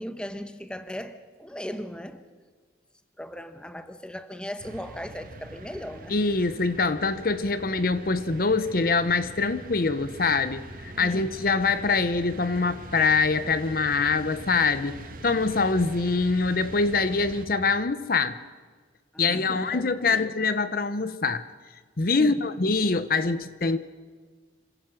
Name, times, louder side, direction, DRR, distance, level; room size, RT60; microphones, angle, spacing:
voice 1, 0.0-2.3 3.2-6.1 11.0-11.3 19.1-20.3 22.2-22.5, equal, 5° left, 0.9 m, -38 dB
sound 1, 4.6-17.5, right 2 dB, 50° right, 1.7 m, -43 dB
voice 2, 6.1-18.4 19.2-21.4 22.0-23.8, left 4 dB, 50° left, 0.8 m, -24 dB
26.5 x 16.0 x 6.4 m
head